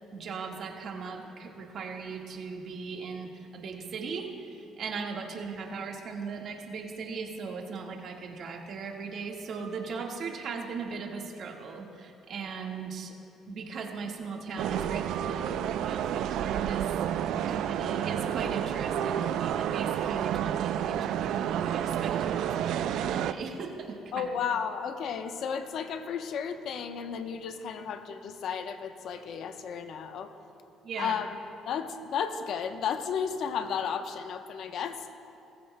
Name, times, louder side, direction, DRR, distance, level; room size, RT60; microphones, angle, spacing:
voice 1, 0.0-13.1 13.5-16.9 17.4-24.3 30.8-31.2, right 5 dB, 60° right, 1 dB, 1.6 m, -38 dB
sound 1, 14.6-23.3, right 10 dB, 75° right, 0.4 m, -30 dB
voice 2, 24.1-30.3 31.0-31.3 31.6-35.1, left 7 dB, 65° left, 7 dB, 0.8 m, -33 dB
20.0 x 14.5 x 2.2 m, 2.7 s
cardioid pair, 90°, 0 cm